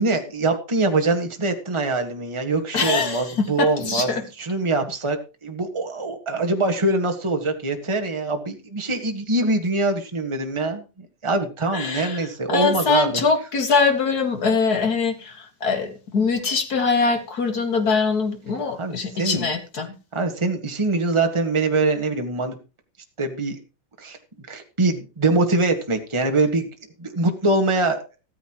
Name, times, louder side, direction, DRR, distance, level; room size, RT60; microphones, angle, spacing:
voice 1, 0.0-4.1 4.4-13.2 18.8-19.5 20.1-22.6 23.2-23.6 24.0-24.2 24.5-26.7 27.0-28.0, right 2 dB, 30° right, 5 dB, 0.5 m, -23 dB
voice 2, 2.7-4.3 11.7-19.9, left 4 dB, 35° left, 6 dB, 1.9 m, -23 dB
15.0 x 14.0 x 3.1 m, 0.30 s
omnidirectional pair, 4.0 m